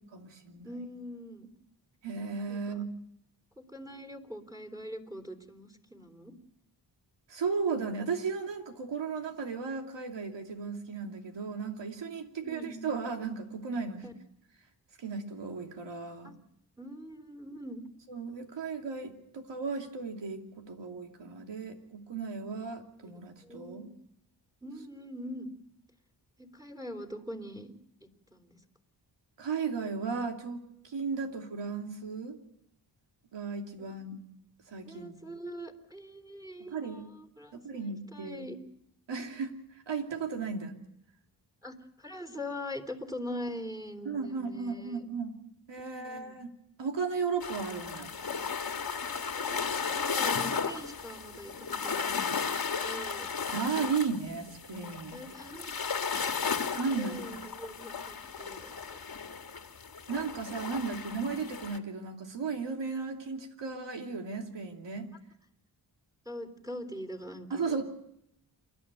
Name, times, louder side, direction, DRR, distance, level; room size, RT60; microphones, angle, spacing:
voice 1, 0.1-0.7 2.0-2.9 7.3-14.1 15.0-16.3 18.1-23.9 29.4-32.4 33.3-34.2 34.7-35.3 36.7-37.0 37.5-38.5 39.1-39.6 39.9-40.7 44.0-45.3 45.7-46.5 46.8-48.1 53.5-55.2 56.7-57.2 60.1-65.1 67.5-67.8, right 5 dB, 75° right, 3 dB, 2.9 m, -35 dB
voice 2, 0.6-1.5 2.5-2.8 3.6-6.3 12.3-12.9 14.0-14.1 16.2-16.4 16.8-17.8 22.5-22.6 23.4-23.9 24.6-25.5 26.4-27.7 28.3-28.6 33.8-33.9 34.8-38.6 41.6-45.0 45.8-46.4 49.4-52.4 52.8-53.3 55.1-55.8 56.9-59.0 66.3-67.8, equal, 10° right, 7 dB, 3.6 m, -43 dB
sound 1, 47.4-61.8, left 5 dB, 50° left, 1.9 m, -35 dB
28.0 x 12.0 x 9.2 m, 0.77 s
cardioid pair, 70°, 44 cm